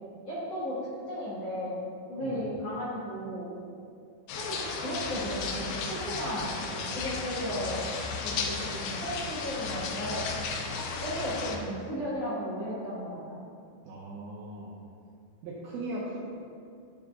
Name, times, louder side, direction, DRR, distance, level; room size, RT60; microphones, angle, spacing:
voice 1, 0.2-0.8 1.1-1.7 2.1-3.5 4.3-7.8 8.2-10.3 11.0-13.4, equal, 60° left, -11 dB, 1.6 m, -35 dB
sound 1, 4.3-11.6, left 4 dB, 90° left, 2.2 m, -34 dB
voice 2, 13.9-14.7 15.4-16.2, right 2 dB, 80° right, -6 dB, 2.2 m, -38 dB
11.5 x 3.9 x 3.5 m, 2.4 s
omnidirectional pair, 5.2 m